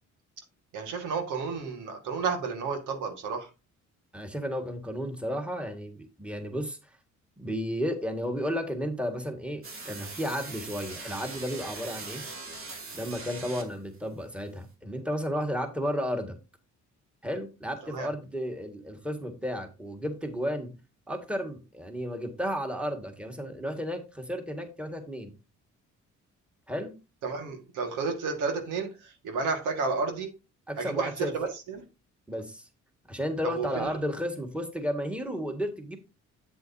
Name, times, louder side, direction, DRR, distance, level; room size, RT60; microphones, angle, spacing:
voice 1, 0.7-3.5 17.8-18.1 27.2-30.3 30.8-31.8 33.4-33.9, right 4 dB, 85° right, 1.9 m, -31 dB
voice 2, 4.1-6.8 7.4-12.2 12.9-16.4 17.2-20.7 21.1-25.3 26.7-26.9 30.7-31.3 32.3-32.7 33.1-36.0, equal, 5° right, 1.9 m, -33 dB
sound 1, 9.6-13.9, right 3 dB, 45° right, 2.5 m, -41 dB
8.2 x 7.9 x 2.8 m
cardioid pair, 90°, 30 cm